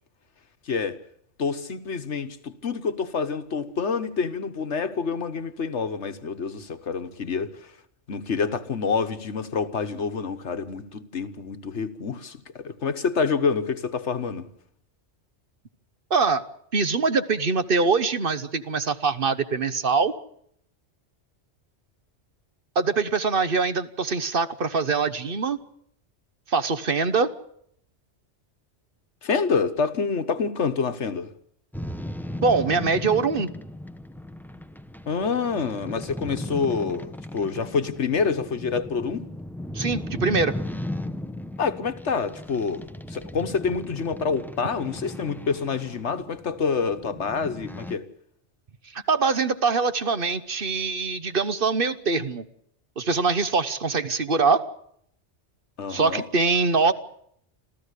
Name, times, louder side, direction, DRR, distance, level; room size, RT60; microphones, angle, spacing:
voice 1, 0.7-1.0 1.4-7.7 8.1-14.4 29.2-31.3 35.1-39.3 41.6-48.1 55.8-56.2, left 5 dB, 75° left, 1.6 m, -27 dB
voice 2, 16.1-16.4 16.7-20.1 22.7-25.6 26.5-27.3 32.4-33.5 39.7-40.6 48.9-52.4 53.0-54.7 55.9-56.9, right 4 dB, 50° right, 1.2 m, -23 dB
sound 1, 31.7-48.0, left 1 dB, ahead, 0.6 m, -36 dB
26.5 x 14.5 x 8.3 m
omnidirectional pair, 1.2 m